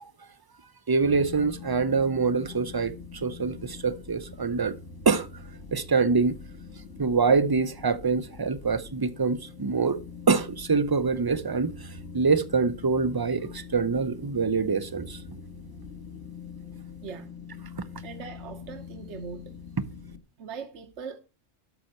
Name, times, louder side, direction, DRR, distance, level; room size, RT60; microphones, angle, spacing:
voice 1, 0.9-4.7 5.1-5.3 5.7-6.4 7.0-10.0 10.3-11.7 12.1-15.2, right 4 dB, 25° right, 0.5 m, -25 dB
sound 1, 1.0-20.2, left 5 dB, 70° left, 1.8 m, -44 dB
voice 2, 18.0-19.4 20.4-21.2, right 6 dB, 70° right, 1.3 m, -40 dB
12.0 x 6.3 x 4.3 m
omnidirectional pair, 1.2 m